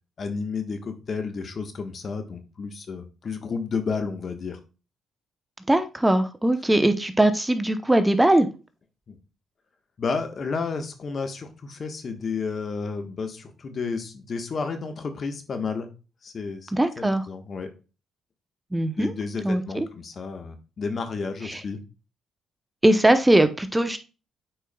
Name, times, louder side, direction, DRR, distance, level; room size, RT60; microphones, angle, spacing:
voice 1, 0.2-4.6 9.1-9.2 10.0-15.9 16.2-17.7 19.0-21.8, left 4 dB, 50° left, 1.3 m, -31 dB
voice 2, 5.7-8.5 16.7-17.2 18.7-19.1 19.4-19.9 21.5-21.6 22.8-24.0, right 1 dB, 10° right, 0.8 m, -20 dB
8.9 x 4.6 x 2.3 m
supercardioid pair, 60°, 0 cm